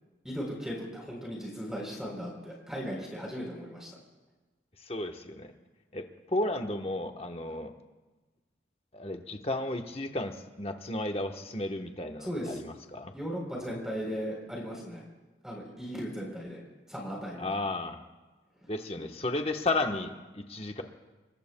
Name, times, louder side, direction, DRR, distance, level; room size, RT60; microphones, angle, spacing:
voice 1, 0.2-3.9 12.2-12.6 13.1-15.0 15.4-16.6 16.9-17.4, equal, 5° right, -2 dB, 3.6 m, -37 dB
voice 2, 4.8-5.5 5.9-7.7 8.9-13.1 17.4-18.0 18.7-20.8, left 2 dB, 30° left, 4 dB, 1.1 m, -33 dB
27.0 x 23.0 x 2.3 m, 1.2 s
head